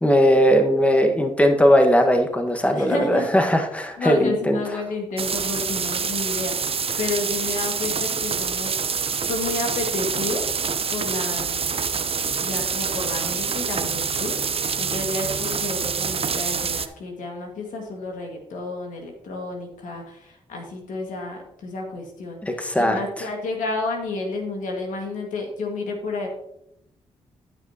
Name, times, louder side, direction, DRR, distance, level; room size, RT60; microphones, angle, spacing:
voice 1, 0.0-4.6 22.4-23.0, equal, 10° left, 4 dB, 1.4 m, -19 dB
voice 2, 2.7-3.3 4.0-8.8 9.3-10.5 10.9-11.8 12.4-26.3, left 3 dB, 80° left, 2 dB, 1.9 m, -31 dB
sound 1, 5.2-16.9, right 6 dB, 45° right, 0.7 m, -26 dB
13.5 x 6.2 x 2.9 m, 0.80 s
supercardioid pair, 45°, 13 cm